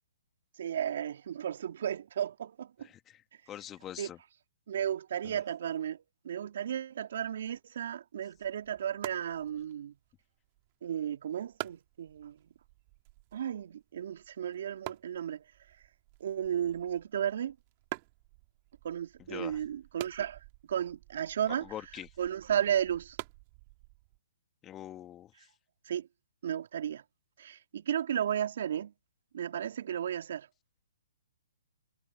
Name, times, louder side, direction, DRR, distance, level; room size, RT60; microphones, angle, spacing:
voice 1, 0.6-2.9 4.0-4.1 4.7-9.9 10.8-12.4 13.3-15.4 16.2-17.6 18.8-20.4 20.7-21.7 22.2-23.2 25.9-26.1 26.4-27.0 27.4-28.9 29.3-30.5, right 9 dB, 60° right, 2.4 m, -34 dB
voice 2, 2.8-3.2 3.5-4.2 19.3-19.6 21.6-22.1 24.6-25.5, left 11 dB, 20° left, 2.0 m, -44 dB
sound 1, 8.3-24.2, right 24 dB, 35° right, 2.2 m, -49 dB
hypercardioid pair, 135°, 0 cm